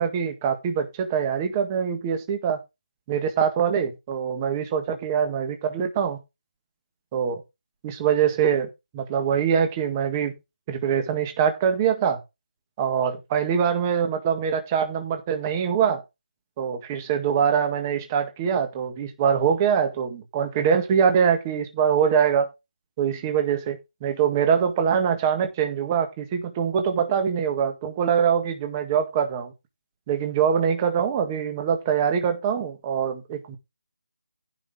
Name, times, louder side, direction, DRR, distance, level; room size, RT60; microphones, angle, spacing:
voice 1, 0.0-2.6 3.1-6.2 7.1-7.4 7.8-8.7 8.9-10.3 10.7-12.2 12.8-16.0 16.6-22.5 23.0-29.5 30.1-33.6, right 7 dB, 15° right, 1.7 m, -23 dB
14.5 x 5.7 x 3.7 m
figure-of-eight pair, 170°, 5 cm